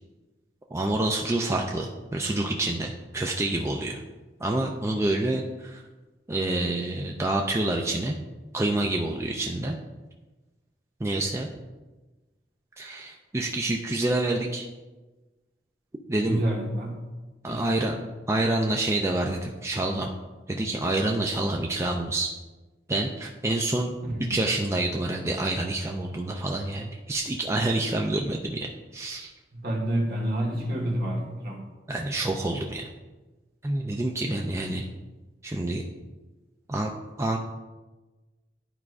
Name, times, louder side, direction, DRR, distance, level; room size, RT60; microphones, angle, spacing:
voice 1, 0.7-4.0 4.4-5.8 6.3-8.2 8.5-9.8 11.0-11.5 12.8-14.7 16.1-16.4 17.4-17.9 18.3-20.1 20.5-22.3 22.9-23.9 24.3-29.3 31.9-32.9 33.6-34.9 35.4-35.8 36.7-36.9 37.2-37.4, right 2 dB, 15° right, 1 dB, 0.4 m, -27 dB
voice 2, 16.2-17.0 17.5-18.0 24.0-24.4 29.5-31.7, right 1 dB, 55° right, 0 dB, 1.4 m, -29 dB
11.0 x 4.7 x 2.4 m, 1.2 s
head